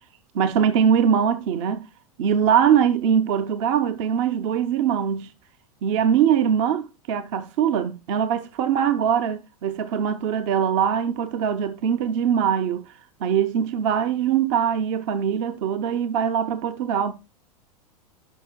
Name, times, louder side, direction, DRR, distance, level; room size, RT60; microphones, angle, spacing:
voice 1, 0.3-1.9 2.2-5.3 5.8-12.9 13.2-17.1, right 8 dB, 50° right, 0.8 m, -22 dB
12.0 x 5.6 x 2.2 m
figure-of-eight pair, 95°, 20 cm